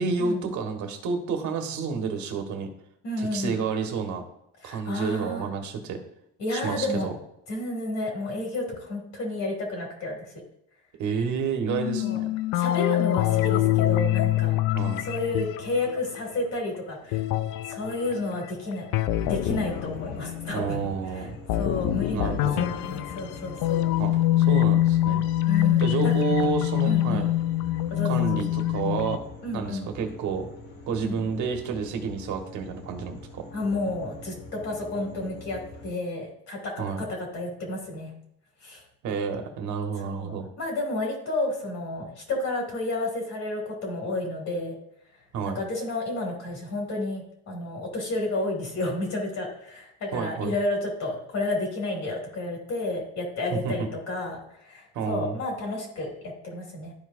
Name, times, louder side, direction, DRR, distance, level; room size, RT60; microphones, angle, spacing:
voice 1, 0.0-2.7 3.2-4.2 4.6-6.0 6.5-7.1 11.0-12.3 14.7-15.0 20.5-21.4 22.1-22.7 24.0-25.2 25.8-27.3 28.0-29.2 29.5-30.5 30.9-33.4 36.8-37.0 39.0-40.5 45.3-45.6 50.1-50.5 53.5-53.9 54.9-55.4, right 5 dB, 60° right, 4 dB, 1.5 m, -30 dB
voice 2, 3.0-3.6 4.6-5.5 6.4-7.1 7.5-10.3 12.0-12.2 12.5-14.6 15.0-17.2 17.7-18.9 19.2-21.3 21.5-23.9 25.5-26.5 26.8-27.3 27.9-28.2 29.4-29.9 31.0-31.2 33.5-38.1 38.6-38.8 40.0-44.8 45.5-56.9, left 2 dB, 50° left, 0 dB, 2.6 m, -31 dB
sound 1, 11.7-16.5 17.1-20.9 21.5-29.2, left 14 dB, 70° left, 0.5 m, -25 dB
sound 2, 19.6-35.9, left 1 dB, 90° left, 1.8 m, -45 dB
12.5 x 4.7 x 2.6 m, 0.77 s
cardioid pair, 140°, 33 cm